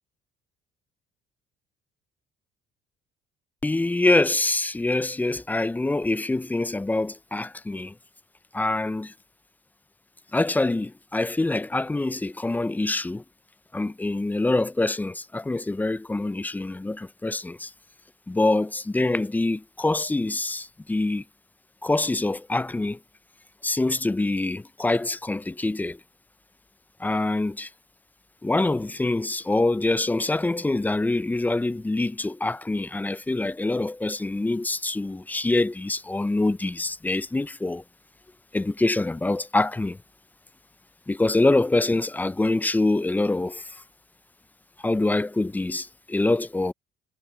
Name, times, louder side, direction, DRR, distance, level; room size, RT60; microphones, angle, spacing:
voice 1, 3.6-7.9 8.5-9.1 10.3-13.2 13.7-17.7 18.3-21.2 21.8-23.0 23.6-26.0 27.0-27.7 28.4-37.8 38.5-40.0 41.1-43.6 44.8-46.7, left 2 dB, 10° left, 0.5 m, -25 dB
cardioid pair, 110°, 17 cm